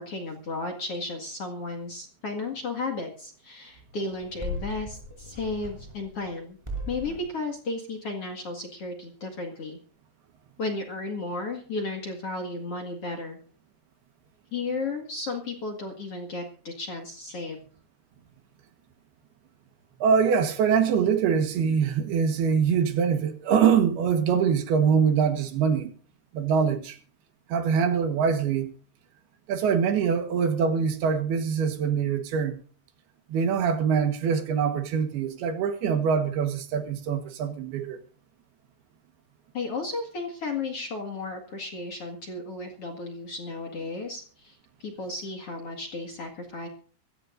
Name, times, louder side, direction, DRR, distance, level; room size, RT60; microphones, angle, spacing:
voice 1, 0.0-6.6 6.9-9.8 10.6-13.4 14.5-17.6 39.5-46.7, left 3 dB, 45° left, 2.3 m, -34 dB
sound 1, 4.1-6.3 6.6-7.3, left 1 dB, 5° right, 5.4 m, -37 dB
voice 2, 20.0-25.9 26.3-27.0 27.5-28.7 29.5-32.6 33.3-38.0, right 6 dB, 70° right, 3.3 m, -24 dB
24.0 x 15.5 x 2.6 m
omnidirectional pair, 4.8 m